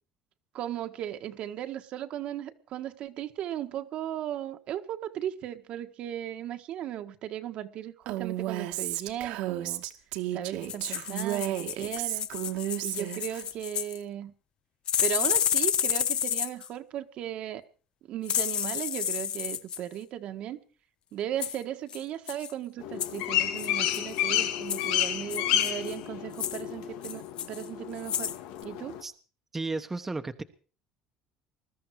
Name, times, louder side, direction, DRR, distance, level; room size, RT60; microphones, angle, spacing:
voice 1, 0.5-9.8 10.3-12.3 12.8-14.3 15.0-17.6 18.1-20.6 21.1-27.2 27.5-28.3 28.6-29.0, right 11 dB, 55° right, 1.6 m, -36 dB
Female speech woman speaking, 8.1-13.4, right 14 dB, 80° right, 2.1 m, -33 dB
sound 1, 10.6-14.0 14.9-16.7 18.3-19.8 21.4-21.6 21.9-22.0 22.3-22.5 23.0-23.2 23.6-24.2 24.7-24.9 25.3-26.0 26.3-26.6 27.0-27.7 28.0-28.4 28.6-28.7, left 9 dB, 45° left, 1.0 m, -30 dB
sound 2, 22.8-29.0, left 11 dB, 85° left, 2.1 m, -30 dB
voice 2, 29.5-30.4, right 3 dB, 15° right, 1.2 m, -33 dB
21.0 x 13.5 x 4.8 m
cardioid pair, 130°, 2 cm